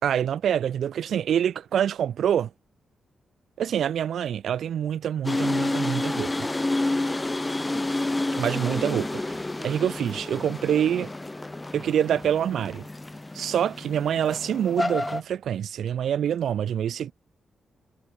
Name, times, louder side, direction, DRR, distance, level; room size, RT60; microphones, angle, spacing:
voice 1, 0.0-2.5 3.6-6.5 8.4-11.1 11.7-12.9 13.3-17.1, right 9 dB, 75° right, 3.8 m, -26 dB
sound 1, 5.2-15.2, left 2 dB, 20° left, 5.0 m, -29 dB
cardioid pair, 60°, 0 cm